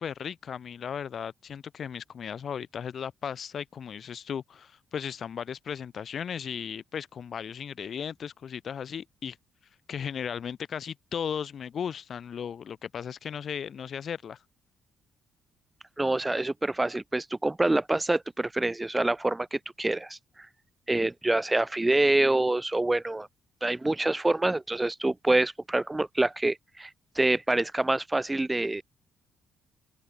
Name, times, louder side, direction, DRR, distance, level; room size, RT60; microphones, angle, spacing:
voice 1, 0.0-9.4 9.9-14.4, left 7 dB, 55° left, 3.2 m, -36 dB
voice 2, 16.0-20.2 20.9-23.3 23.6-26.9 27.2-28.8, right 2 dB, 15° right, 0.7 m, -26 dB
open air
cardioid pair, 90°, 0 cm